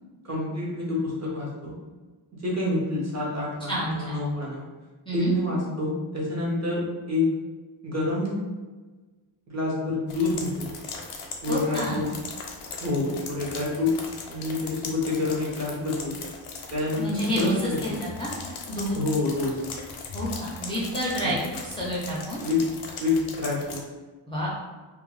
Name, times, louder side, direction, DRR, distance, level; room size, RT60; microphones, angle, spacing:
voice 1, 0.2-1.7 2.3-4.6 5.1-7.3 7.8-8.4 9.5-10.7 11.4-12.0 12.8-14.0 14.3-16.1 16.7-17.6 17.9-18.0 18.9-19.6 21.2-21.4 22.4-22.6 23.0-23.8, left 2 dB, 35° right, -5 dB, 0.7 m, -27 dB
voice 2, 3.7-4.2 5.1-5.3 11.5-12.0 17.0-18.3 18.7-19.0 20.1-22.4 24.3-24.5, equal, 10° left, -8 dB, 0.4 m, -29 dB
sound 1, 10.1-23.8, left 4 dB, 85° left, 0.6 m, -39 dB
2.3 x 2.1 x 3.1 m, 1.3 s
wide cardioid pair, 150°, 50 cm